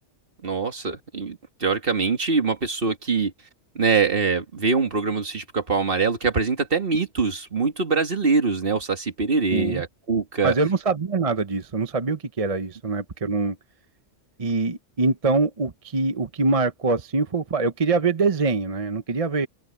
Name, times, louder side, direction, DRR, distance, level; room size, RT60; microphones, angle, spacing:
voice 1, 0.4-3.3 3.8-10.5, right 4 dB, 45° right, 2.1 m, -23 dB
voice 2, 9.5-9.8 10.4-13.6 14.4-19.5, right 3 dB, 30° right, 0.8 m, -24 dB
open air
omnidirectional pair, 1.3 m